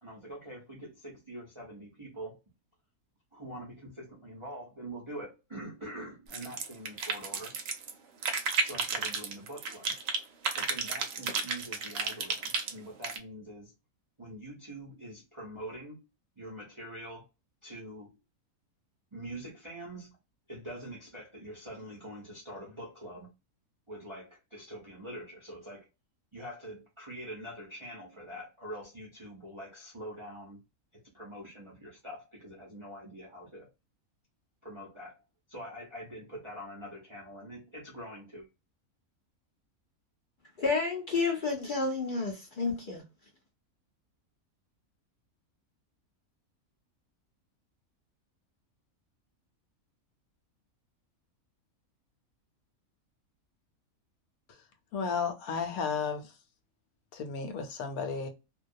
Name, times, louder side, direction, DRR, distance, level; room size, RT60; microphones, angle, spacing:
voice 1, 0.0-2.4 3.3-7.5 8.6-9.9 10.5-13.7 14.2-16.1 16.4-17.3 17.6-18.2 19.1-20.2 20.5-23.3 23.9-25.9 26.3-30.6 30.9-33.7 34.6-35.2 35.5-38.5, right 1 dB, 45° right, 0.4 m, -44 dB
sound 1, 6.3-7.9 8.2-10.2 10.4-13.2, right 4 dB, 65° right, 0.7 m, -32 dB
voice 2, 40.6-43.0, left 4 dB, 60° left, 0.5 m, -30 dB
voice 3, 54.9-56.2 57.1-58.3, left 5 dB, 80° left, 1.0 m, -33 dB
2.3 x 2.2 x 2.6 m
omnidirectional pair, 1.6 m